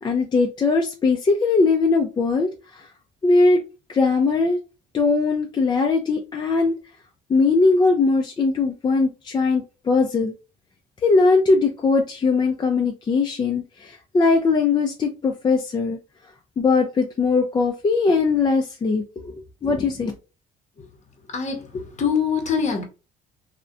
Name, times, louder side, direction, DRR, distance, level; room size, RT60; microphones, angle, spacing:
voice 1, 0.0-2.9 3.2-3.6 3.9-4.6 4.9-6.7 7.3-10.3 11.0-16.0 16.6-20.1, left 4 dB, 25° left, 0.4 m, -20 dB
voice 2, 21.3-22.8, left 6 dB, 45° left, 0.7 m, -24 dB
2.4 x 2.1 x 2.4 m
cardioid pair, 85°, 17 cm